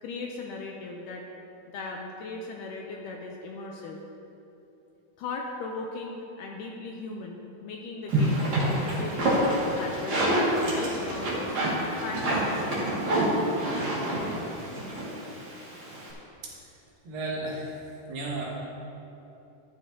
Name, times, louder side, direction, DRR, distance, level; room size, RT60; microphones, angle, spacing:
voice 1, 0.0-1.2 1.7-4.0 5.2-9.4 9.8-11.6 12.0-13.0, left 3 dB, 80° left, 0 dB, 2.0 m, -38 dB
sound 1, 8.1-16.1, right 1 dB, 35° right, 2.2 m, -27 dB
voice 2, 17.1-17.8 18.1-18.5, right 2 dB, 70° right, -5 dB, 3.6 m, -33 dB
13.0 x 10.0 x 2.8 m, 2.9 s
omnidirectional pair, 4.2 m